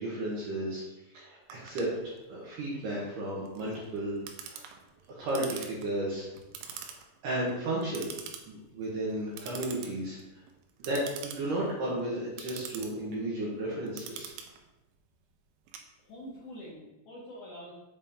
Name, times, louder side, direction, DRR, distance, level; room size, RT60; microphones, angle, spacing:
voice 1, 0.0-4.6 5.1-6.3 6.7-8.1 8.5-10.4 10.8-14.3, right 1 dB, 65° right, -6 dB, 2.2 m, -34 dB
Clock, 1.5-16.4, right 8 dB, 85° right, 3.0 m, -46 dB
voice 2, 16.0-17.7, equal, 70° left, -7 dB, 1.9 m, -45 dB
7.2 x 4.1 x 3.6 m, 0.99 s
omnidirectional pair, 5.1 m